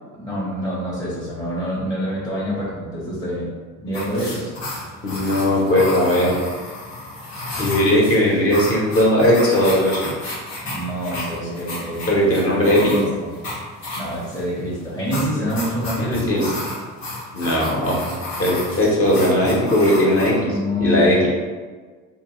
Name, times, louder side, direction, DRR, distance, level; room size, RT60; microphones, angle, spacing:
voice 1, 0.1-3.5 3.8-4.5 10.6-12.1 12.6-13.3 14.0-16.4 20.4-21.3, equal, 10° left, -7 dB, 0.8 m, -26 dB
sound 1, 3.9-20.3, left 2 dB, 75° left, 1.1 m, -32 dB
voice 2, 5.0-6.3 7.6-10.1 12.1-12.9 16.0-16.5 17.3-18.0 18.4-21.3, left 1 dB, 35° left, -4 dB, 1.0 m, -18 dB
2.5 x 2.4 x 3.0 m, 1.4 s
hypercardioid pair, 65°, 42 cm